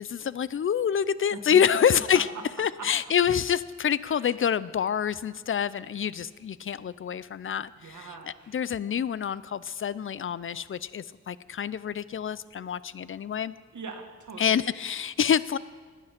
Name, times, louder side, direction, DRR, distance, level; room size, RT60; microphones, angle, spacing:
voice 1, 0.0-2.3 2.6-8.1 8.5-13.5 14.4-15.6, left 8 dB, 45° left, 18 dB, 0.4 m, -27 dB
voice 2, 1.9-2.4 2.8-2.9 4.1-4.3 7.8-8.6 13.7-14.7, right 4 dB, 80° right, 3 dB, 1.8 m, -41 dB
19.0 x 9.1 x 5.9 m, 1.5 s
wide cardioid pair, 125°, 29 cm